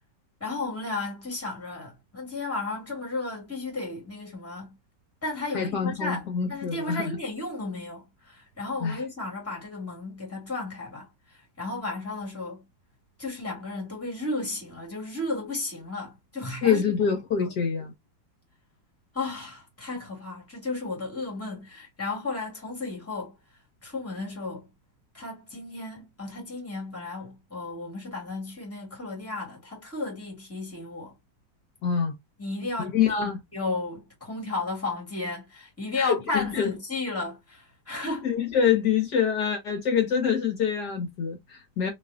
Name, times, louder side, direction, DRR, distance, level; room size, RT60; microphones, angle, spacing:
voice 1, 0.4-4.8 5.2-12.6 13.2-16.8 17.4-17.5 19.1-23.3 23.8-24.7 25.1-31.2 32.4-38.3, left 3 dB, 10° left, 1.9 m, -34 dB
voice 2, 5.5-7.0 8.8-9.0 16.6-17.9 31.8-32.1 32.9-33.4 35.9-36.7 38.2-41.9, left 7 dB, 70° left, 1.6 m, -25 dB
4.1 x 3.1 x 2.4 m
omnidirectional pair, 1.9 m